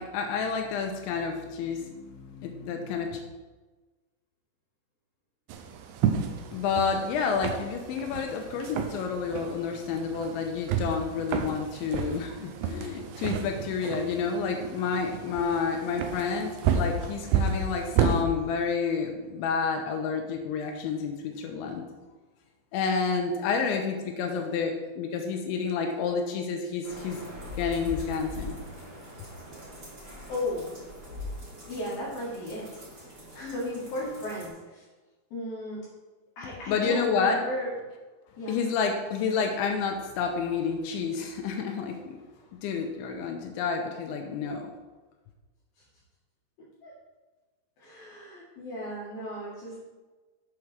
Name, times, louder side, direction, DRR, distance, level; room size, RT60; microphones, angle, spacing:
voice 1, 0.0-3.2 6.5-21.8 22.7-27.2 27.6-28.6 36.7-37.4 38.5-42.2 42.6-44.7, left 5 dB, 85° left, 3 dB, 3.1 m, -29 dB
sound 1, 5.5-18.2, right 7 dB, 80° right, 2.3 m, -31 dB
sound 2, 26.8-34.5, equal, 30° right, 2.8 m, -42 dB
voice 2, 30.3-30.7 31.7-34.9 35.3-35.8 36.4-37.7 38.4-38.5 46.8-46.9 47.8-49.8, left 1 dB, 60° left, -7 dB, 3.3 m, -35 dB
8.3 x 5.0 x 6.0 m, 1.3 s
omnidirectional pair, 5.4 m